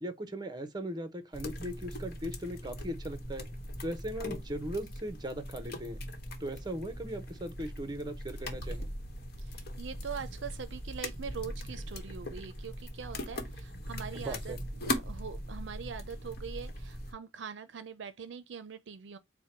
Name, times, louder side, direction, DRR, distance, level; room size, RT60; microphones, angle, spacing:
voice 1, 0.0-3.5 3.8-6.0 6.4-8.9 14.1-14.6, right 1 dB, 20° right, 0.7 m, -38 dB
sound 1, 1.3-17.1, left 1 dB, 55° left, 1.0 m, -40 dB
voice 2, 9.4-19.2, right 6 dB, 70° right, 0.5 m, -43 dB
4.5 x 2.2 x 4.3 m
head